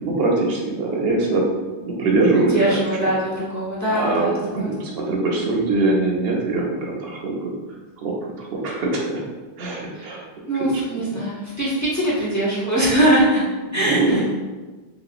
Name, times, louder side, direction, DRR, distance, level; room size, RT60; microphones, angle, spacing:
voice 1, 0.0-1.4 1.8-3.0 3.9-7.5 8.0-9.2 9.6-10.2 10.7-11.0 13.7-14.2, right 2 dB, 75° right, -1 dB, 0.8 m, -22 dB
voice 2, 2.4-4.7 9.9-13.4 13.7-14.2, right 1 dB, 20° left, -7 dB, 0.6 m, -22 dB
2.9 x 2.9 x 2.4 m, 1.3 s
omnidirectional pair, 1.0 m